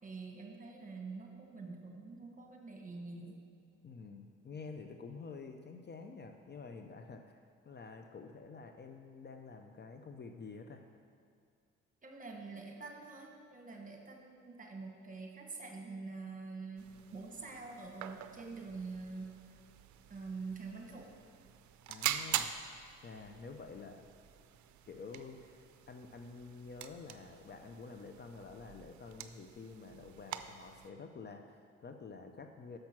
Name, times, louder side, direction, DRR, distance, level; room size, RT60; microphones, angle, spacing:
voice 1, 0.0-3.4 12.0-19.3 20.1-21.1, right 4 dB, 25° right, 2 dB, 1.2 m, -46 dB
voice 2, 3.8-7.4 7.7-10.8 21.9-22.5 23.0-24.0 24.9-32.8, left 4 dB, 35° left, 5 dB, 0.5 m, -49 dB
sound 1, 16.8-30.9, right 11 dB, 70° right, 0.5 m, -44 dB
6.5 x 5.9 x 5.9 m, 2.3 s
cardioid pair, 90°, 30 cm